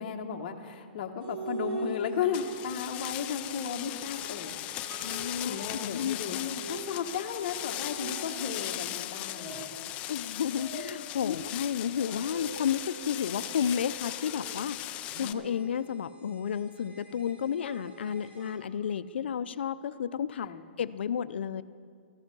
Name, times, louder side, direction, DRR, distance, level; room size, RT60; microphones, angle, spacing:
voice 1, 0.0-4.5 5.4-9.7 11.2-11.3 20.4-20.6, left 7 dB, 45° left, 2 dB, 1.2 m, -34 dB
sound 1, 1.2-2.9 4.1-7.2 7.7-10.0 10.5-11.2 11.9-14.7 15.1-18.7, right 2 dB, 65° right, 1.9 m, -43 dB
sound 2, 2.3-15.3, left 14 dB, 20° left, 0.3 m, -38 dB
voice 2, 5.0-6.6 10.1-14.8 15.2-20.5 20.8-21.6, left 8 dB, 75° left, 14 dB, 0.5 m, -32 dB
14.5 x 12.0 x 5.4 m, 2.2 s
hypercardioid pair, 165°, 6 cm